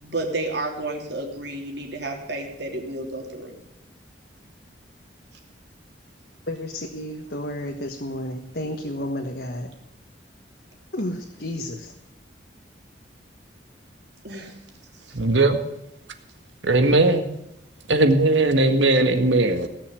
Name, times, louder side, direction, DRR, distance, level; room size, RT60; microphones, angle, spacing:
voice 1, 0.0-3.5 14.2-14.5, right 2 dB, 70° right, 1 dB, 3.3 m, -31 dB
voice 2, 6.5-9.7 10.9-11.9, left 1 dB, 60° left, 2 dB, 1.4 m, -31 dB
voice 3, 15.1-15.6 16.6-17.3 17.9-19.7, right 2 dB, 85° right, 7 dB, 1.8 m, -18 dB
18.0 x 6.9 x 9.2 m, 0.85 s
head